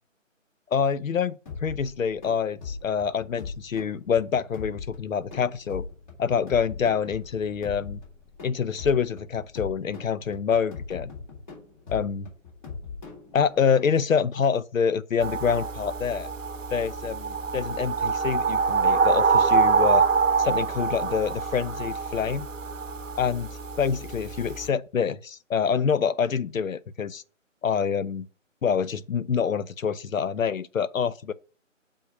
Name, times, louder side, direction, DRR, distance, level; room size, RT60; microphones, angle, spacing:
voice 1, 0.7-1.3 1.6-5.8 6.2-8.0 8.4-11.1 11.9-12.3 13.3-16.3 16.7-20.0 20.4-22.5 23.2-23.5 23.8-27.2 27.6-28.3 28.6-31.3, left 7 dB, 90° left, 0.6 m, -26 dB
sound 1, 1.5-13.8, left 5 dB, 35° left, 3.4 m, -40 dB
sound 2, 15.2-24.7, right 5 dB, 75° right, 0.7 m, -25 dB
6.9 x 3.6 x 5.1 m
figure-of-eight pair, 155°, 39 cm